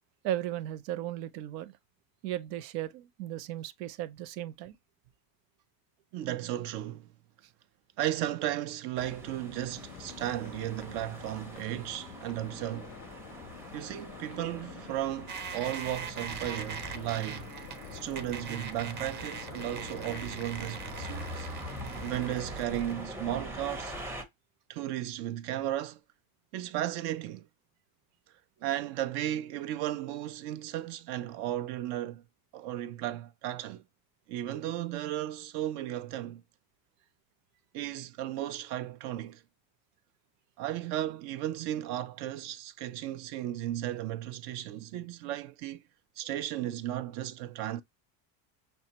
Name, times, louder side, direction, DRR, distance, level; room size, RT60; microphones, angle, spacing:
voice 1, 0.2-1.7 2.2-4.8, right 13 dB, 90° right, 0.7 m, -36 dB
voice 2, 6.1-7.1 8.0-13.0 13.7-17.5 17.9-21.5 22.0-24.0 24.7-26.0 26.5-27.5 28.6-32.2 32.5-33.8 34.3-36.4 37.7-39.4 40.6-45.8 46.2-47.8, right 13 dB, 55° right, 0.6 m, -35 dB
sound 1, 9.0-24.2, equal, 5° right, 0.6 m, -45 dB
sound 2, 9.7-22.8, left 11 dB, 45° left, 0.4 m, -48 dB
sound 3, 15.3-22.9, right 5 dB, 35° right, 0.9 m, -41 dB
6.1 x 2.3 x 2.8 m
cardioid pair, 135°, 48 cm